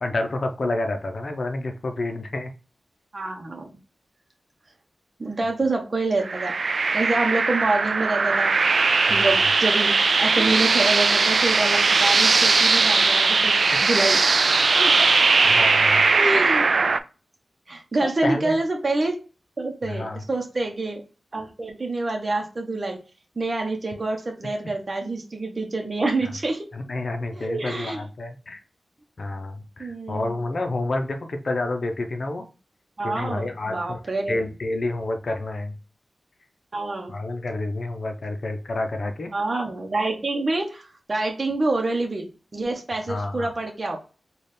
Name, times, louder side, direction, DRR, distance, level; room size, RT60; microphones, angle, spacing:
voice 1, 0.0-2.5 9.1-9.3 13.7-13.8 14.6-14.9 15.4-16.1 18.0-18.5 19.8-20.2 25.0-25.1 26.7-28.6 29.2-32.5 33.0-34.0 34.3-35.8 37.1-39.3 43.1-43.5, left 2 dB, 60° left, 5 dB, 0.6 m, -29 dB
voice 2, 3.1-3.7 5.2-6.6 6.9-8.5 8.8-13.5 13.8-14.2 14.4-14.6 15.0-15.1 16.1-16.7 17.7-19.2 19.6-21.0 21.3-23.0 23.4-26.7 27.3-28.0 29.8-30.4 33.0-34.3 36.7-37.1 39.3-44.0, right 2 dB, 45° right, 1 dB, 0.8 m, -27 dB
sound 1, 6.2-17.0, right 4 dB, 65° right, 0.3 m, -19 dB
4.1 x 2.4 x 3.3 m, 0.33 s
wide cardioid pair, 70°, 0 cm